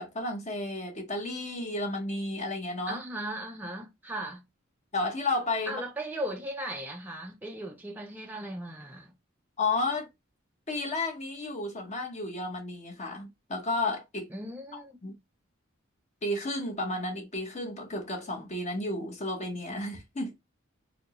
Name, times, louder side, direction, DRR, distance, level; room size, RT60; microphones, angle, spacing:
voice 1, 0.0-3.0 4.9-5.8 9.6-10.1 10.7-14.3 14.7-15.1 16.2-20.3, left 2 dB, 35° left, 0.9 m, -32 dB
voice 2, 2.9-4.4 5.7-9.1 14.3-15.0, right 1 dB, 10° right, 0.4 m, -37 dB
4.2 x 2.1 x 2.9 m
head